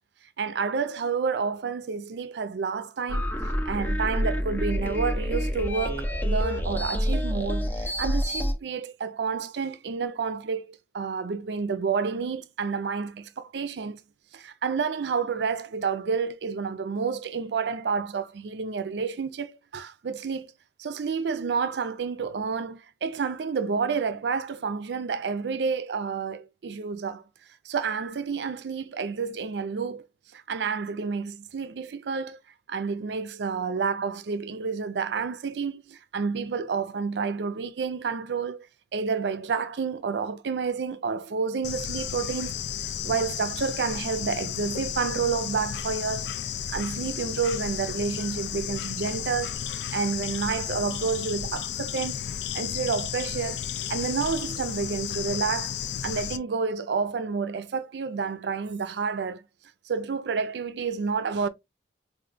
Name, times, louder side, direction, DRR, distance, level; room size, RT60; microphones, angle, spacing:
voice 1, 0.4-3.3 3.7-14.0 14.3-20.5 20.8-27.2 27.6-30.1 30.3-32.4 32.7-38.7 38.9-42.5 42.8-46.3 46.7-49.6 49.9-52.2 52.5-53.6 53.9-55.8 56.0-59.4 59.9-61.5, right 5 dB, 75° right, 0.4 m, -29 dB
sound 1, 3.1-8.5, equal, 10° left, 0.5 m, -27 dB
Bird / Insect, 41.6-56.4, left 9 dB, 75° left, 0.4 m, -33 dB
4.8 x 2.5 x 2.5 m
head